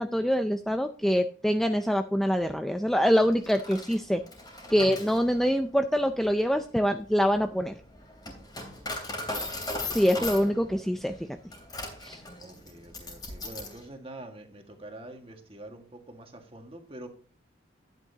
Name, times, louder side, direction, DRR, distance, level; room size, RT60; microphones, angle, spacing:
voice 1, 0.0-4.2 4.7-7.8 9.9-11.4 12.0-12.2, equal, ahead, 6 dB, 0.4 m, -25 dB
Coin (dropping), 3.3-13.8, left 2 dB, 20° left, 3.0 m, -39 dB
voice 2, 12.4-17.1, right 1 dB, 30° right, 4 dB, 1.8 m, -45 dB
11.5 x 9.1 x 2.8 m, 0.41 s
head